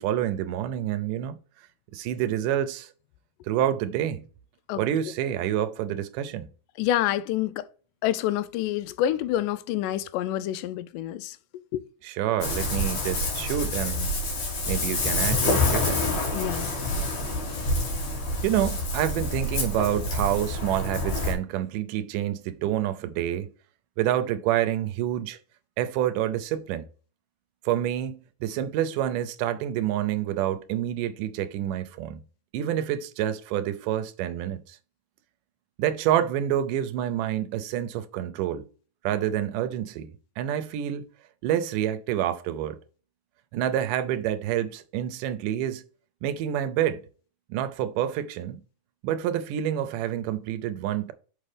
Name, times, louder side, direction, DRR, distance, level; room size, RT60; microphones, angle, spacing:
voice 1, 0.0-1.4 1.9-2.9 3.5-4.3 4.8-6.5 12.0-14.2 14.7-16.0 18.4-23.5 24.0-25.4 25.8-26.9 27.7-32.2 32.5-34.8 35.8-38.7 39.0-41.1 41.4-42.8 43.5-45.8 46.2-47.0 47.5-48.6 49.0-51.1, right 11 dB, 85° right, 2.2 m, -28 dB
voice 2, 6.8-7.7 8.0-11.4 11.7-11.8 16.3-16.7, left 12 dB, 90° left, 2.1 m, -27 dB
Ocean, 12.4-21.3, left 2 dB, 70° left, 3.7 m, -27 dB
6.5 x 5.6 x 3.4 m
omnidirectional pair, 3.7 m